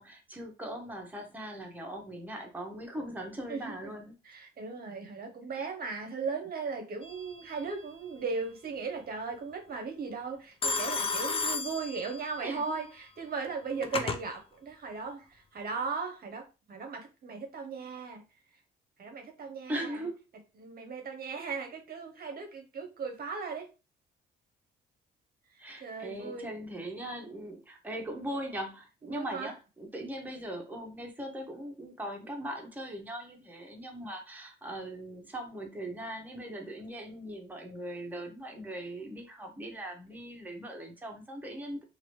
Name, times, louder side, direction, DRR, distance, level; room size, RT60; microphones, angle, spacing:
voice 1, 0.0-4.1 5.5-5.7 12.4-12.6 19.7-20.2 22.2-22.3 25.6-41.8, right 1 dB, 10° right, 1 dB, 0.9 m, -40 dB
voice 2, 4.2-18.2 19.0-20.0 20.6-23.7 25.8-26.5 29.1-29.5, right 4 dB, 50° right, 4 dB, 0.7 m, -37 dB
Telephone, 7.0-7.5 10.6-12.5 13.5-14.2, left 4 dB, 30° left, 0.5 m, -33 dB
2.9 x 2.5 x 3.1 m, 0.30 s
cardioid pair, 90°, 20 cm